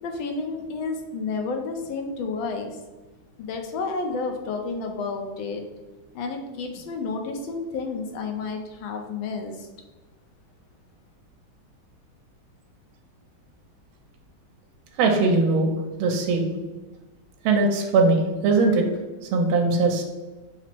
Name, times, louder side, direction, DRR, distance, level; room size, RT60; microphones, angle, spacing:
voice 1, 0.0-2.8 3.4-5.6 6.1-9.7, left 4 dB, 75° left, 3 dB, 1.4 m, -31 dB
voice 2, 15.0-15.7 16.0-16.5 17.4-18.8 19.3-20.0, right 3 dB, 85° right, 2 dB, 1.5 m, -20 dB
5.9 x 2.0 x 4.4 m, 1.2 s
omnidirectional pair, 2.3 m